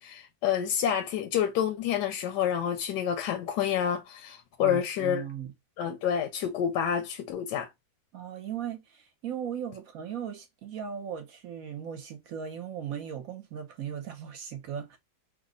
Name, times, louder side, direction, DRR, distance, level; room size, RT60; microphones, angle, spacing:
voice 1, 0.0-5.2 5.8-7.7, left 9 dB, 80° left, 1.2 m, -28 dB
voice 2, 4.6-5.5 8.1-15.0, right 8 dB, 60° right, 1.0 m, -37 dB
3.3 x 2.0 x 3.7 m
omnidirectional pair, 1.9 m